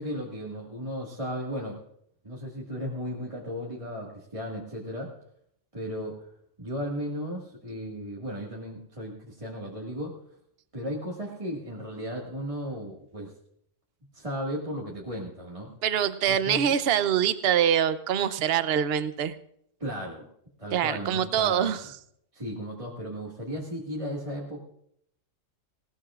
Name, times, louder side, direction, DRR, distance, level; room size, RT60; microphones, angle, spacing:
voice 1, 0.0-1.8 2.2-5.1 5.7-6.3 6.6-10.1 10.7-13.3 14.1-15.7 16.3-16.7 19.8-20.3 20.6-21.8 22.3-24.6, equal, 25° right, -4 dB, 1.9 m, -35 dB
voice 2, 15.8-19.4 20.7-21.8, right 9 dB, 55° right, 12 dB, 0.9 m, -24 dB
19.5 x 18.5 x 2.4 m, 0.71 s
omnidirectional pair, 1.3 m